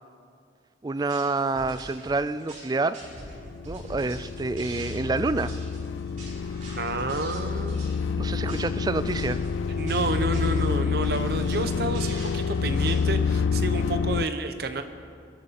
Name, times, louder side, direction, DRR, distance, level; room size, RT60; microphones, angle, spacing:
voice 1, 0.8-3.0 3.7-5.5 8.2-9.4, right 3 dB, 20° right, 14 dB, 0.3 m, -27 dB
sound 1, 1.0-13.0, right 1 dB, 40° right, 4.0 m, -43 dB
sound 2, 3.1-14.3, left 5 dB, 90° left, 0.4 m, -28 dB
voice 2, 6.8-7.9 9.7-14.8, right 2 dB, 55° right, 8 dB, 0.9 m, -30 dB
23.5 x 11.0 x 4.2 m, 2.3 s
head